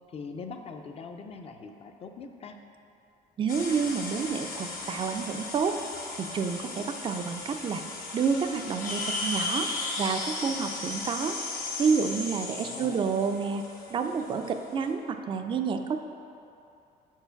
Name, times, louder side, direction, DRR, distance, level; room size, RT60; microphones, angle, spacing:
voice 1, 0.1-2.6 12.6-13.1, left 4 dB, 35° left, 6 dB, 0.5 m, -42 dB
voice 2, 3.4-5.8 6.2-7.8 8.1-9.7 10.0-11.4 11.8-13.6 13.9-16.0, right 5 dB, 30° right, 6 dB, 0.4 m, -29 dB
sound 1, 3.5-14.9, left 3 dB, 60° left, 1.0 m, -36 dB
5.0 x 4.6 x 5.7 m, 2.7 s
cardioid pair, 110°, 17 cm